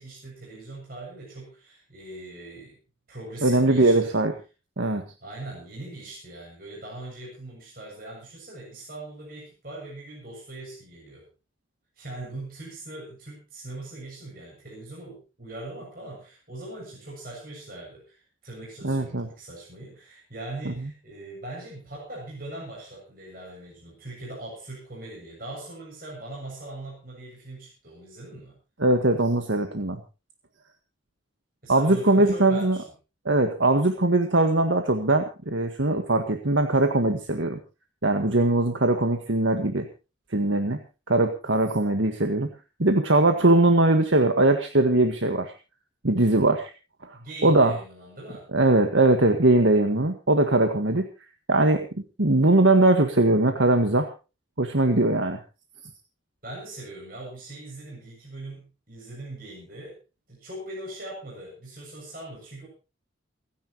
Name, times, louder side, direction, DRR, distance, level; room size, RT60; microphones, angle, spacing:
voice 1, 0.0-2.8 3.1-4.1 5.2-11.2 12.0-28.6 31.6-32.8 47.1-48.5 56.4-60.0 60.3-62.7, right 2 dB, 45° right, -3 dB, 7.5 m, -41 dB
voice 2, 3.4-4.3 4.8-5.0 18.8-19.3 20.6-20.7 28.8-30.0 31.7-32.8 33.2-37.6 38.0-39.9 40.3-40.8 41.1-42.5 42.8-45.5 46.0-46.7 47.0-47.8 48.5-51.1 51.5-51.9 52.2-54.1 54.6-55.4, right 2 dB, 75° right, 6 dB, 1.7 m, -21 dB
29.5 x 10.5 x 3.1 m, 0.31 s
head